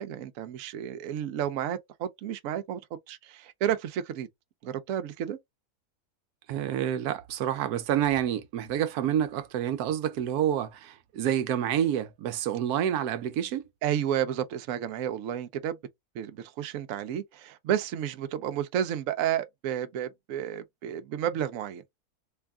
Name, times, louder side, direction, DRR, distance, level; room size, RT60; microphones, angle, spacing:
voice 1, 0.0-2.8 3.1-4.3 4.6-5.4 13.8-15.8 16.1-21.8, right 10 dB, 70° right, 1.0 m, -31 dB
voice 2, 6.5-13.6, right 10 dB, 90° right, 1.1 m, -28 dB
3.3 x 2.4 x 3.5 m
omnidirectional pair, 1.6 m